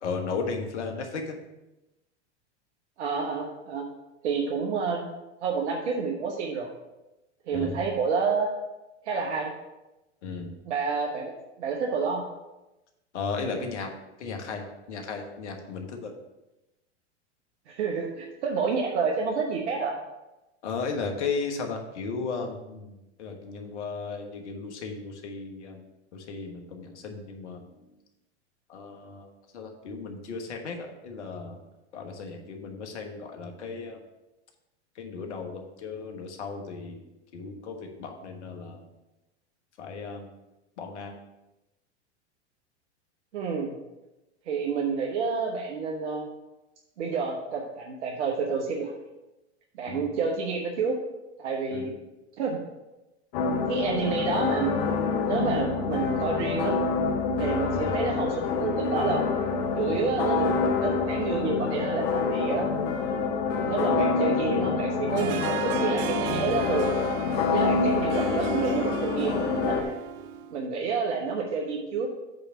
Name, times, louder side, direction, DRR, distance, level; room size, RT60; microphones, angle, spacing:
voice 1, 0.0-1.4 7.5-7.8 10.2-10.5 13.1-13.9 14.2-16.1 20.6-25.8 26.1-27.9 28.7-31.6 31.9-34.0 34.9-37.0 37.3-38.8 39.8-40.3 40.8-41.2 49.9-50.2 51.7-51.9 57.7-57.9 59.9-60.0, left 4 dB, 75° left, 3 dB, 1.4 m, -35 dB
voice 2, 3.0-3.8 4.2-5.1 5.4-6.7 7.5-8.5 9.0-9.5 10.7-11.3 11.6-12.2 17.7-20.0 43.3-43.7 44.5-46.3 47.0-48.9 49.7-51.0 51.4-51.9 52.4-52.6 53.7-54.9 55.2-56.8 57.4-59.2 59.8-60.5 60.7-62.7 63.6-66.9 67.5-69.9 70.5-72.1, right 5 dB, 75° right, 0 dB, 1.1 m, -29 dB
sound 1, 53.3-69.8, left 4 dB, 60° left, 1.0 m, -27 dB
Harp, 65.2-70.6, right 10 dB, 45° right, 0.5 m, -35 dB
8.0 x 3.4 x 6.0 m, 0.99 s
hypercardioid pair, 100°, 35 cm